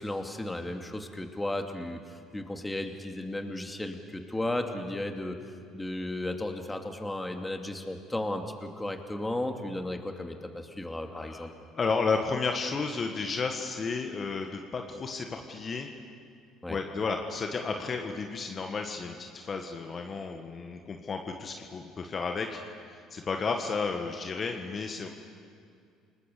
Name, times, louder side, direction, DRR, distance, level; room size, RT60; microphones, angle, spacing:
voice 1, 0.0-5.4 5.7-11.5 16.6-16.8, left 1 dB, 10° left, 4 dB, 2.7 m, -34 dB
voice 2, 11.1-11.5 11.8-15.9 16.7-25.1, left 4 dB, 40° left, 4 dB, 1.8 m, -32 dB
29.0 x 20.0 x 6.9 m, 2.3 s
hypercardioid pair, 60°, 0 cm